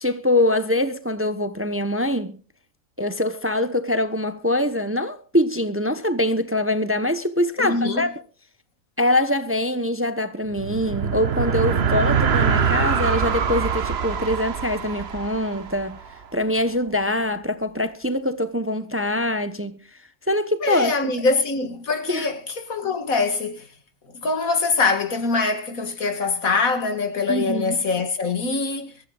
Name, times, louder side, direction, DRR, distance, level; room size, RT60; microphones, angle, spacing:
voice 1, 0.0-2.4 3.0-8.1 9.0-16.0 16.3-19.8 20.3-20.9 22.1-22.3 27.3-27.7, left 1 dB, 10° right, 0.9 m, -23 dB
voice 2, 7.6-8.1 20.6-23.6 24.2-28.9, left 4 dB, 80° left, 2.3 m, -23 dB
sound 1, 10.5-16.2, right 6 dB, 50° right, 1.2 m, -24 dB
23.5 x 14.5 x 2.4 m
omnidirectional pair, 1.4 m